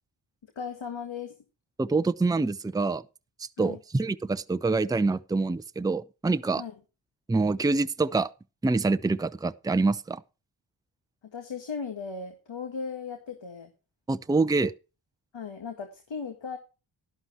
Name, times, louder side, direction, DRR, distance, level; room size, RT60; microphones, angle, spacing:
voice 1, 0.6-1.3 3.6-3.8 6.6-6.7 11.3-13.7 15.3-16.6, left 5 dB, 70° left, 1.8 m, -37 dB
voice 2, 1.8-3.0 3.4-6.6 7.3-8.3 8.6-10.2 14.1-14.7, right 3 dB, 10° right, 0.5 m, -26 dB
11.5 x 11.5 x 3.0 m
cardioid pair, 50°, 46 cm